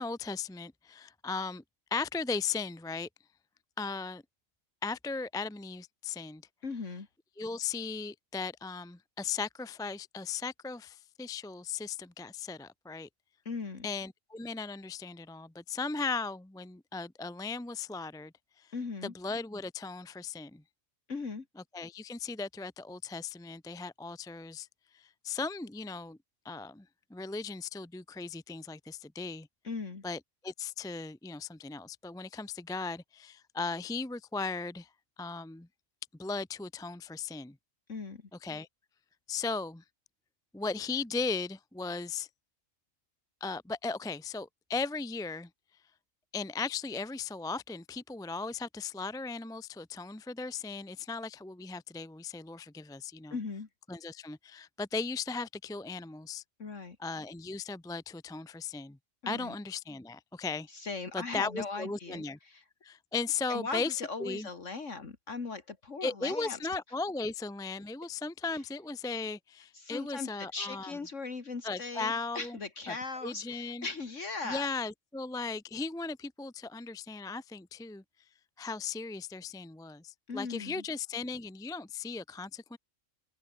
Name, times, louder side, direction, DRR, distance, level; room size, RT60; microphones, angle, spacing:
voice 1, 0.0-1.6 1.9-3.1 3.8-4.2 4.8-6.4 7.4-13.1 13.8-18.7 19.0-20.6 21.7-24.7 24.9-26.2 26.4-29.5 30.0-34.9 35.2-35.7 36.2-37.6 38.4-38.7 39.3-39.8 40.5-42.3 43.4-45.5 46.3-53.4 53.9-56.4 57.0-59.0 59.3-60.7 61.1-62.4 62.8-64.5 66.0-70.9 71.6-72.6 72.9-73.0 73.2-73.9 74.4-78.0 78.6-82.8, left 4 dB, 5° left, 0.3 m, -37 dB
voice 2, 6.6-7.1 13.5-13.9 18.7-19.1 21.1-21.5 29.6-30.0 37.9-38.2 53.3-53.7 56.6-57.0 59.2-59.5 60.7-62.6 63.5-66.6 69.7-74.7 80.3-80.8, left 4 dB, 65° left, 2.5 m, -39 dB
open air
omnidirectional pair, 1.3 m